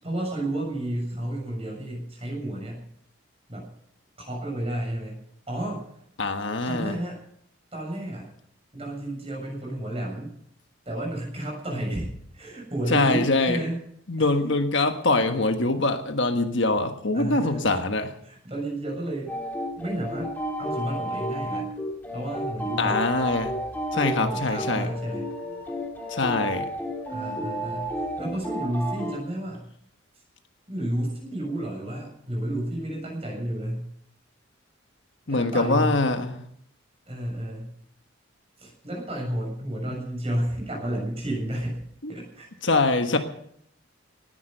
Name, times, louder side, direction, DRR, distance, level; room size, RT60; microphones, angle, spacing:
voice 1, 0.0-2.8 3.5-3.7 4.2-5.9 6.6-7.2 7.7-8.3 8.7-10.3 10.9-13.8 14.2-14.3 17.1-17.7 18.2-19.3 19.8-20.3 20.6-21.7 22.1-23.0 23.9-25.3 27.1-29.7 30.7-33.9 35.3-36.0 37.1-37.7 38.6-41.8 42.1-42.5 43.1-43.2, right 1 dB, 30° right, 0 dB, 7.1 m, -31 dB
voice 2, 6.2-6.9 12.9-13.6 14.1-18.1 22.8-23.5 24.0-24.9 26.1-26.7 35.3-36.4 42.0-42.1 42.6-43.2, left 3 dB, 60° left, 7 dB, 1.5 m, -23 dB
sound 1, 19.3-29.2, equal, 10° left, 3.0 m, -32 dB
19.0 x 11.0 x 6.7 m, 0.69 s
head